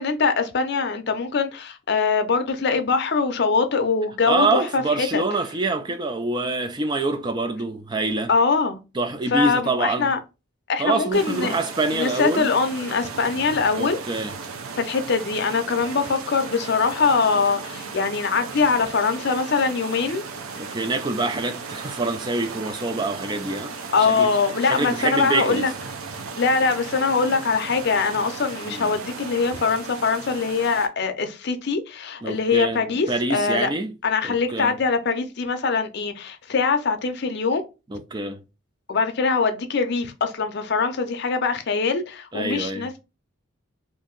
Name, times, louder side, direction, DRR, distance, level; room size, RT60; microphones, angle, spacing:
voice 1, 0.0-5.2 8.3-8.8 9.3-10.2 10.7-11.5 11.9-14.0 14.8-20.2 23.9-25.7 26.4-33.7 34.0-37.6 38.9-43.0, left 4 dB, 50° left, 0.5 m, -23 dB
voice 2, 4.3-8.3 8.9-10.2 10.8-12.5 13.8-14.3 20.6-23.7 24.0-24.3 24.6-25.7 28.6-29.0 32.2-33.9 34.2-34.8 37.9-38.4 42.3-42.9, right 3 dB, 20° right, 0.3 m, -26 dB
sound 1, 11.1-30.9, right 5 dB, 80° right, 0.5 m, -36 dB
2.8 x 2.5 x 3.7 m
head